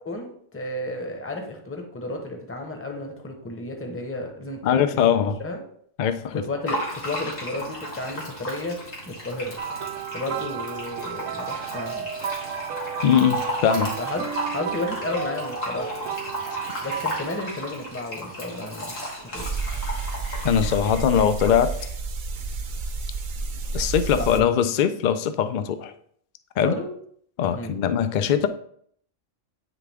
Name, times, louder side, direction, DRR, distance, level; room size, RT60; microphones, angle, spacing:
voice 1, 0.0-5.1 5.4-5.6 6.3-8.8 9.1-9.5 10.1-12.1 14.0-15.9 16.8-19.0 19.3-19.5 24.1-24.4 26.6-26.9 27.6-27.7, left 2 dB, 10° left, 3 dB, 0.8 m, -32 dB
voice 2, 4.6-5.4 6.0-6.5 13.0-13.9 20.4-21.8 23.7-25.9 26.6-26.8 27.4-28.5, left 8 dB, 60° left, 10 dB, 0.5 m, -21 dB
Fill (with liquid), 6.7-21.9, left 1 dB, 85° left, 2.2 m, -35 dB
sound 1, 9.6-17.8 18.7-18.9 20.8-20.9, right 8 dB, 80° right, 1.0 m, -33 dB
sound 2, 19.4-24.4, right 4 dB, 50° right, 0.7 m, -30 dB
9.4 x 3.3 x 3.5 m, 0.63 s
omnidirectional pair, 1.3 m